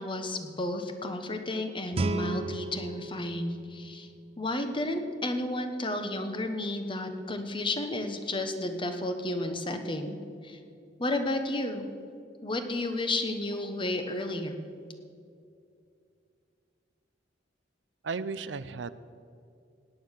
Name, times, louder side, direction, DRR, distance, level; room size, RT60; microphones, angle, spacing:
voice 1, 0.0-4.1 4.4-10.2 10.4-10.6 11.0-11.9 12.4-14.7, left 1 dB, 30° left, 7 dB, 1.2 m, -32 dB
Guitar, 1.9-4.7, right 2 dB, 35° right, 0.6 m, -35 dB
voice 2, 18.0-18.9, right 4 dB, 80° right, 14 dB, 0.6 m, -34 dB
17.5 x 9.5 x 6.6 m, 2.5 s
head